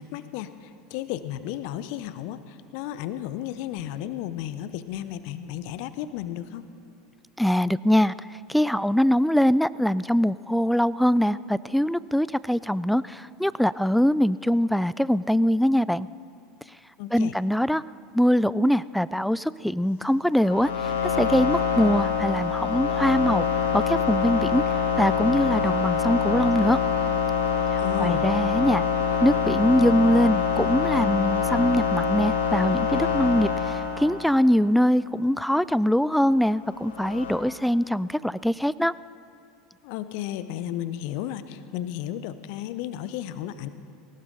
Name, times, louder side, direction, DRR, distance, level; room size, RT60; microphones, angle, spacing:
voice 1, 0.0-6.7 17.0-17.3 27.8-28.3 39.8-43.7, left 12 dB, 60° left, 13 dB, 0.8 m, -33 dB
voice 2, 7.4-8.1 8.5-16.1 17.1-17.8 18.1-20.9 21.2-23.4 23.7-24.6 25.0-26.8 28.0-28.8 29.2-38.9, equal, ahead, 19 dB, 0.3 m, -22 dB
sound 1, 20.3-34.5 36.7-37.3, left 6 dB, 75° left, 2.5 m, -25 dB
19.5 x 18.0 x 3.9 m, 2.4 s
figure-of-eight pair, 75°, 0 cm